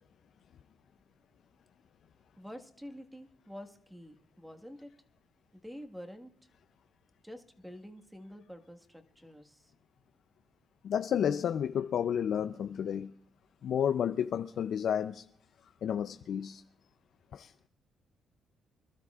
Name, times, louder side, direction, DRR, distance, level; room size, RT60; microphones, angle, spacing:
voice 1, 2.4-4.9 5.5-6.3 7.2-9.7, equal, 5° right, 1.6 m, -48 dB
voice 2, 10.8-13.1 13.6-15.2 15.8-16.6 17.3-17.5, left 8 dB, 65° left, 0.5 m, -31 dB
26.0 x 12.5 x 2.4 m
cardioid pair, 90°, 0 cm